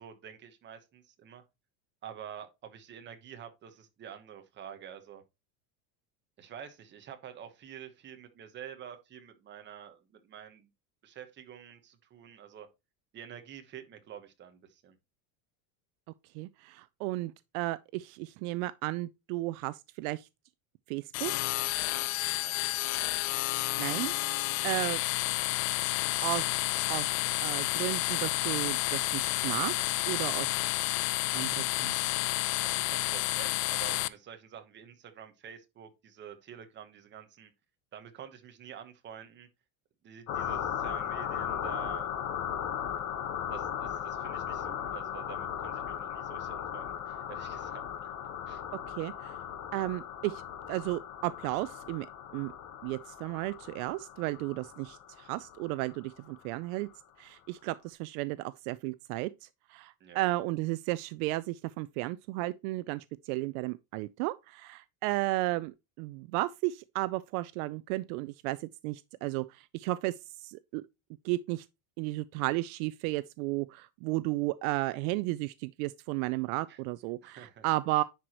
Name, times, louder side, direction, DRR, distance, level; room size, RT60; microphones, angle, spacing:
voice 1, 0.0-1.4 2.0-5.2 6.4-10.7 11.0-12.7 13.1-15.0 22.4-22.5 32.6-37.5 37.9-39.5 40.0-42.1 43.5-48.1 48.5-48.6 60.0-60.2 76.7-76.8 77.2-77.6 77.9-78.0, right 9 dB, 25° right, 1.0 m, -48 dB
voice 2, 16.3-20.3 20.9-21.3 23.8-25.0 26.2-26.5 26.9-27.1 27.4-30.5 31.3-31.9 48.9-49.4 49.7-50.4 50.7-52.1 52.3-52.5 52.8-56.9 57.2-70.8 71.2-71.7 72.0-78.0, right 19 dB, 70° right, 0.5 m, -34 dB
sound 1, 21.1-34.1, left 20 dB, 65° left, 0.6 m, -30 dB
sound 2, 40.3-56.5, left 9 dB, 40° left, 1.1 m, -37 dB
10.0 x 4.8 x 2.9 m
cardioid pair, 170°, 44 cm